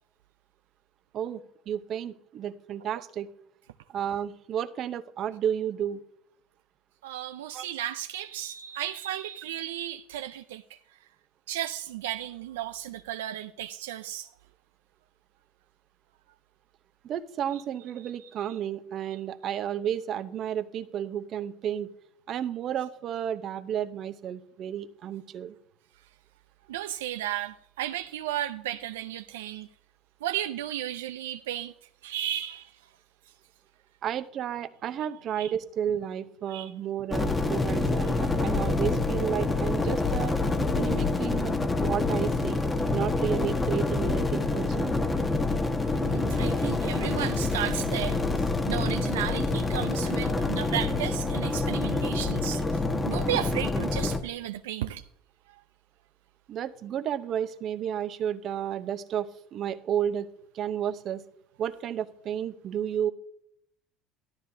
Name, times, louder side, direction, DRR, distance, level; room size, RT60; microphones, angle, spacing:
voice 1, 1.1-3.3 3.9-6.0 7.5-7.7 17.0-21.9 22.3-25.5 34.0-40.3 40.7-41.5 41.8-42.6 42.9-45.0 56.5-60.3 60.5-61.2 61.6-63.1, right 9 dB, 50° right, 0.8 m, -32 dB
voice 2, 7.0-10.8 11.5-14.3 17.5-17.6 18.2-18.5 26.7-29.7 30.2-31.7 32.0-32.9 35.4-35.5 36.5-36.7 45.8-55.1, right 12 dB, 85° right, 0.4 m, -34 dB
sound 1, 37.1-54.2, left 3 dB, 20° left, 1.3 m, -27 dB
13.5 x 12.5 x 2.7 m
hypercardioid pair, 75°, 0 cm